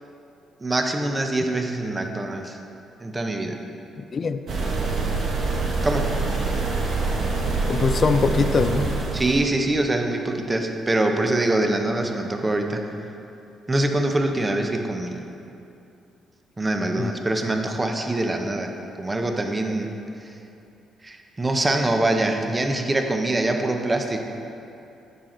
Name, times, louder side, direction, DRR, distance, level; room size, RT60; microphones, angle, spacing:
voice 1, 0.6-2.6 3.0-3.6 5.8-6.1 9.1-12.8 13.7-15.2 16.6-18.7 19.0-19.9 20.2-20.4 21.0-24.2, right 2 dB, 20° right, 4 dB, 0.7 m, -24 dB
voice 2, 4.0-4.5 7.6-8.9 17.0-17.1, left 5 dB, 45° left, 10 dB, 0.4 m, -23 dB
sound 1, 4.5-9.4, right 3 dB, 60° right, 1.1 m, -25 dB
9.0 x 6.0 x 3.9 m, 2.8 s
cardioid pair, 90°, 0 cm